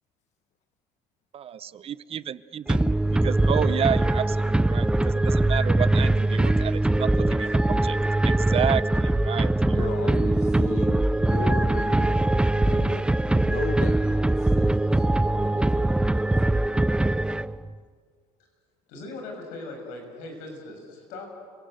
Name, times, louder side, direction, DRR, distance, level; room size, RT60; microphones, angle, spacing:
voice 1, 1.3-8.0 8.2-9.9, right 9 dB, 45° right, 17 dB, 0.8 m, -31 dB
sound 1, 2.7-17.7, right 2 dB, 5° right, 0.5 m, -22 dB
voice 2, 7.2-7.7 9.7-16.5, left 9 dB, 60° left, 9 dB, 1.2 m, -38 dB
voice 3, 18.9-21.3, left 2 dB, 80° left, 3 dB, 6.8 m, -39 dB
30.0 x 18.0 x 7.9 m, 2.1 s
supercardioid pair, 80°, 14 cm